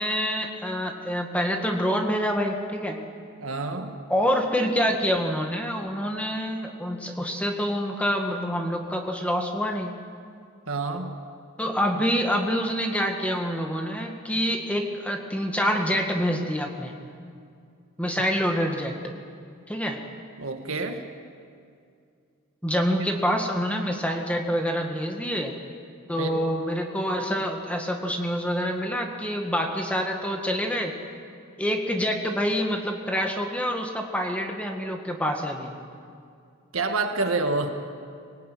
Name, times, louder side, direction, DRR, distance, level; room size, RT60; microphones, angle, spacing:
voice 1, 0.0-3.0 4.1-9.9 11.6-16.9 18.0-19.0 19.7-20.0 22.6-25.5 26.1-30.9 31.6-35.7, equal, 5° left, 2 dB, 1.8 m, -26 dB
voice 2, 3.4-4.0 10.7-11.2 20.4-21.0 26.2-26.3 36.7-37.7, right 3 dB, 70° right, 5 dB, 1.8 m, -27 dB
25.0 x 18.0 x 9.3 m, 2.4 s
head